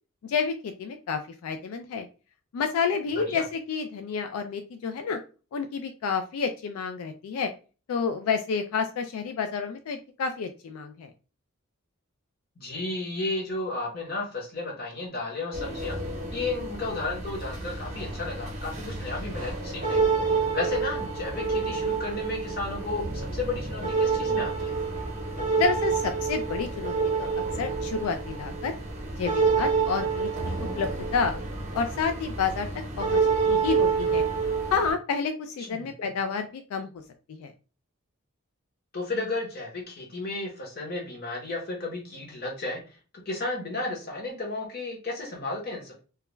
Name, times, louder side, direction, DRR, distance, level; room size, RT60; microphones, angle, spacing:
voice 1, 0.2-2.1 2.5-5.2 5.5-7.5 7.9-11.1 25.6-27.3 27.6-28.7 29.2-30.3 30.8-31.4 31.7-32.7 33.0-34.2 34.7-36.9 37.3-37.5, left 5 dB, 85° left, 7 dB, 0.3 m, -29 dB
voice 2, 12.6-16.0 16.3-24.7 35.6-36.1 38.9-42.8 43.3-46.0, left 2 dB, 45° left, -1 dB, 0.8 m, -33 dB
sound 1, 15.5-34.9, right 4 dB, 35° right, 0.6 m, -28 dB
2.3 x 2.2 x 3.0 m, 0.35 s
head